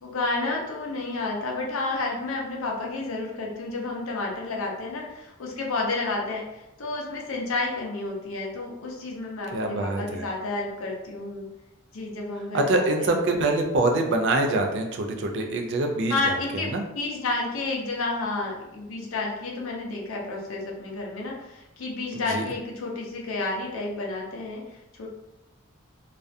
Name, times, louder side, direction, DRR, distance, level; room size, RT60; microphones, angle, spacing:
voice 1, 0.0-11.5 11.9-13.2 16.1-25.1, left 3 dB, 70° left, -1 dB, 0.5 m, -31 dB
voice 2, 9.5-10.2 12.5-16.1 16.7-16.8 22.3-22.4, right 2 dB, 60° right, 3 dB, 0.4 m, -24 dB
2.4 x 2.1 x 2.5 m, 0.92 s
head